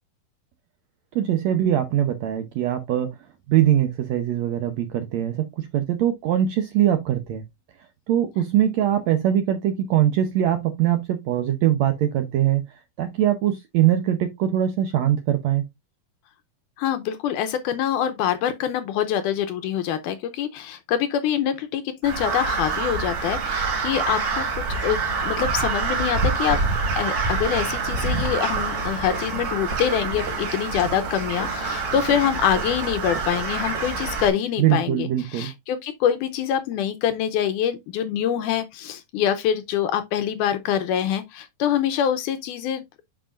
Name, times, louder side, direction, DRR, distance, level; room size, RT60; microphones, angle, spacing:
voice 1, 1.1-3.1 3.5-7.4 8.1-12.6 13.0-15.6 34.6-35.5, right 11 dB, 75° right, 1.6 m, -22 dB
voice 2, 16.8-26.6 27.0-43.0, left 9 dB, 80° left, 2.1 m, -25 dB
Crow, 22.0-34.3, right 4 dB, 55° right, 3.9 m, -26 dB
10.0 x 4.8 x 2.4 m
omnidirectional pair, 4.0 m